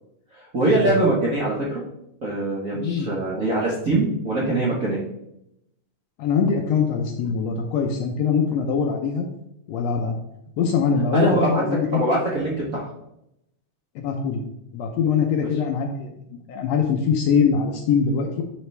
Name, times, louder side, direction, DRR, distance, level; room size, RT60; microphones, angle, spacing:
voice 1, 0.3-1.8 2.2-5.0 11.1-12.9 15.4-15.5, right 2 dB, 85° right, -5 dB, 0.7 m, -23 dB
voice 2, 2.7-3.1 6.2-9.2 9.7-10.2 10.6-12.0 13.9-14.4 14.7-16.1 16.5-18.3, left 6 dB, 75° left, 3 dB, 1.5 m, -22 dB
11.0 x 3.9 x 3.3 m, 0.81 s
omnidirectional pair, 3.6 m